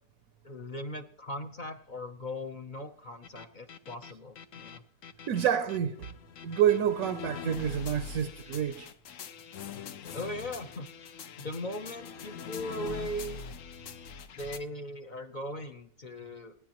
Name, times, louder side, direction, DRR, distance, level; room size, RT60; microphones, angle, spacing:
voice 1, 0.4-4.8 10.1-10.9 11.4-13.5 14.3-16.5, equal, 40° left, 0.7 m, -39 dB
sound 1, 3.2-14.6, left 6 dB, 65° left, 1.0 m, -43 dB
voice 2, 5.3-6.1 6.4-8.9, right 9 dB, 70° right, 1.1 m, -28 dB
27.0 x 9.9 x 3.0 m
omnidirectional pair, 1.6 m